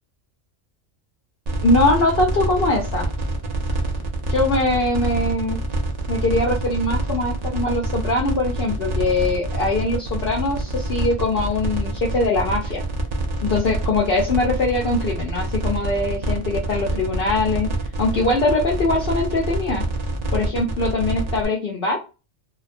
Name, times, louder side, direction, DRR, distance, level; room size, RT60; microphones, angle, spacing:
sound 1, 1.5-21.5, right 2 dB, 75° right, 0.3 m, -26 dB
voice 1, 1.6-3.1 4.3-5.6 6.1-12.8 13.4-17.7 18.0-19.8 20.3-22.0, left 2 dB, 60° left, 1 dB, 0.7 m, -22 dB
2.3 x 2.2 x 2.4 m, 0.31 s
omnidirectional pair, 1.3 m